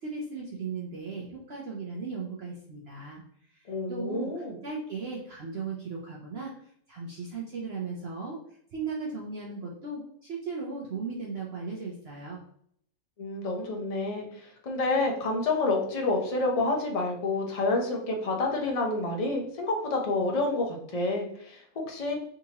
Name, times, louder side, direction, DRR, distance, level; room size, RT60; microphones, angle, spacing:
voice 1, 0.0-3.2 3.5-6.5 6.9-12.4, right 4 dB, 60° right, -3 dB, 0.7 m, -37 dB
voice 2, 3.7-4.5 13.2-22.2, left 2 dB, 45° left, 0 dB, 0.5 m, -29 dB
3.6 x 2.8 x 2.8 m, 0.67 s
omnidirectional pair, 1.6 m